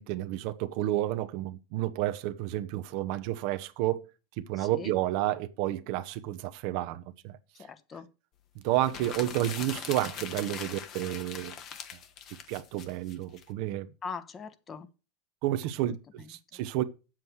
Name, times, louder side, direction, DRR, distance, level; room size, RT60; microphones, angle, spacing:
voice 1, 0.0-4.1 4.4-7.4 8.6-11.5 12.5-13.9 15.4-16.8, right 14 dB, 60° right, 0.8 m, -31 dB
voice 2, 4.6-4.9 7.6-8.1 14.0-14.9 16.2-16.6, left 5 dB, 25° left, 1.1 m, -41 dB
sound 1, 8.7-13.4, left 8 dB, 45° left, 1.4 m, -41 dB
7.7 x 7.5 x 6.3 m
supercardioid pair, 115°, 0 cm